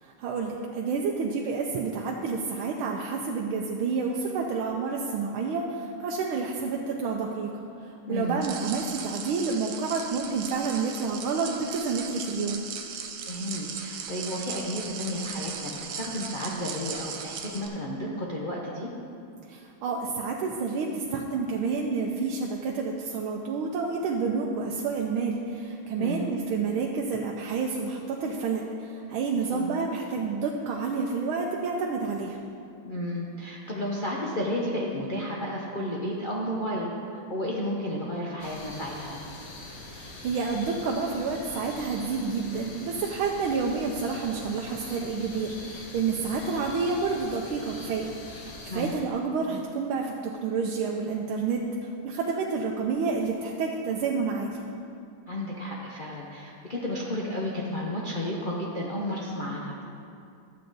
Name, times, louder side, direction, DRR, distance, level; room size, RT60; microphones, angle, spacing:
voice 1, 0.0-7.5 7.8-12.6 19.5-32.4 39.9-54.6, right 4 dB, 85° right, 0 dB, 1.5 m, -29 dB
voice 2, 8.1-8.4 13.2-18.9 26.0-26.2 29.5-29.7 32.8-39.2 48.7-48.9 55.3-59.9, left 1 dB, 70° left, -5 dB, 0.4 m, -32 dB
sound 1, 8.4-17.7, right 7 dB, 70° right, 1.4 m, -38 dB
sound 2, 38.4-49.0, left 2 dB, 85° left, 2.1 m, -43 dB
11.5 x 7.7 x 3.9 m, 2.5 s
omnidirectional pair, 2.3 m